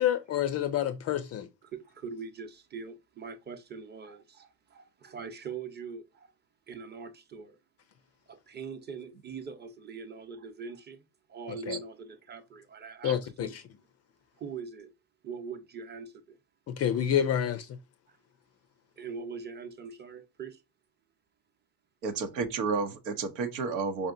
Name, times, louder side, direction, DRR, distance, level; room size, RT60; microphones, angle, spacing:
voice 1, 0.0-1.5 11.7-11.8 13.0-13.6 16.7-17.7, left 10 dB, 35° left, 0.4 m, -28 dB
voice 2, 1.6-6.3 6.7-7.6 8.3-11.0 11.3-13.6 14.4-14.9 15.2-16.4 18.1-18.2 19.0-20.6, right 5 dB, 20° right, 0.8 m, -42 dB
voice 3, 22.0-24.1, right 4 dB, 85° right, 1.0 m, -31 dB
4.9 x 2.7 x 2.5 m
supercardioid pair, 90°, 49 cm